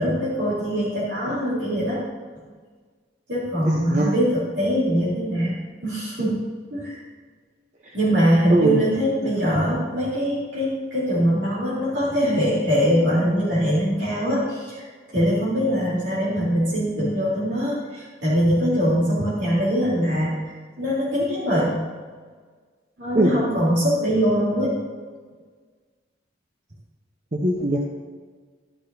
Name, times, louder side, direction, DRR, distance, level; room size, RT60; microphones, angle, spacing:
voice 1, 0.0-2.0 3.3-6.4 6.7-7.0 7.9-21.8 23.0-24.7, equal, 70° right, -8 dB, 3.5 m, -22 dB
voice 2, 3.6-4.1 8.5-8.8 23.1-23.3 27.3-27.8, right 1 dB, 40° right, -1 dB, 0.9 m, -21 dB
12.0 x 11.0 x 2.7 m, 1.5 s
head